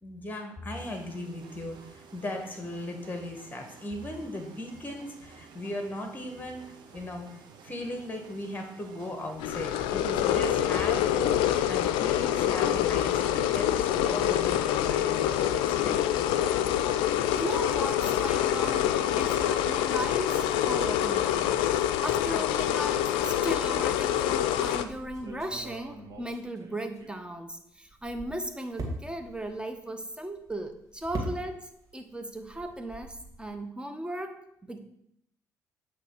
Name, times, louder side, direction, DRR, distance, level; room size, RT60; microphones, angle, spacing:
voice 1, 0.0-7.3 7.6-16.8, left 1 dB, 20° left, 4 dB, 1.5 m, -38 dB
sound 1, 0.7-10.0, right 6 dB, 60° right, 0.9 m, -52 dB
sound 2, 9.4-24.8, left 11 dB, 75° left, 0.4 m, -26 dB
voice 2, 17.3-34.8, right 1 dB, 10° right, 7 dB, 0.9 m, -37 dB
sound 3, 24.8-27.5 27.9-31.9 32.2-33.5, right 2 dB, 45° right, 1.6 m, -41 dB
8.2 x 3.1 x 4.6 m, 0.72 s
hypercardioid pair, 55°, 9 cm